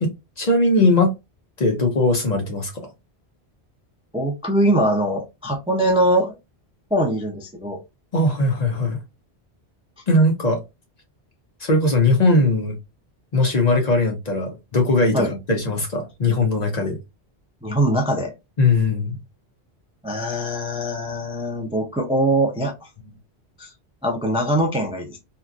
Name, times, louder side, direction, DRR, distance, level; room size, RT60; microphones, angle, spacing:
voice 1, 0.0-1.1 1.6-2.9 8.1-9.0 10.1-10.6 11.6-12.8 13.3-17.0 18.6-19.2, left 2 dB, 45° left, 0.7 m, -19 dB
voice 2, 4.1-6.4 6.9-7.8 15.1-15.3 17.6-18.3 20.0-22.9 23.6-23.7 24.0-25.2, right 1 dB, 10° right, 0.3 m, -22 dB
2.8 x 2.3 x 2.4 m
omnidirectional pair, 1.1 m